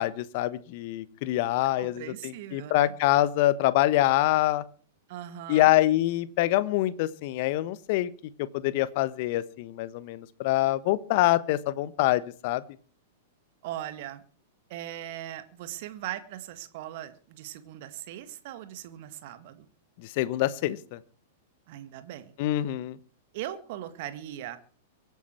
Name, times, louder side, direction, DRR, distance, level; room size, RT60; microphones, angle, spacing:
voice 1, 0.0-4.6 5.5-8.1 8.4-12.6 20.2-21.0 22.4-23.0, left 15 dB, 50° left, 17 dB, 1.2 m, -25 dB
voice 2, 1.8-2.9 5.1-5.7 13.6-14.2 14.7-19.7 21.7-22.3 23.3-24.6, right 12 dB, 50° right, 11 dB, 1.8 m, -39 dB
24.0 x 9.5 x 4.6 m, 0.41 s
figure-of-eight pair, 100°, 0 cm